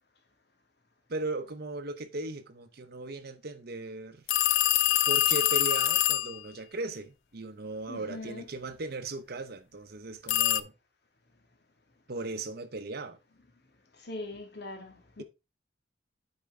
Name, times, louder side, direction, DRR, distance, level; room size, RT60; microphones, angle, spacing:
voice 1, 1.1-4.3 5.1-10.7 12.1-13.2, right 2 dB, 55° right, 0.9 m, -37 dB
sound 1, 4.3-6.4 10.3-10.6, left 13 dB, 85° left, 0.5 m, -24 dB
voice 2, 7.9-8.4 14.0-15.2, left 2 dB, 60° left, 1.8 m, -41 dB
9.1 x 4.4 x 3.5 m
head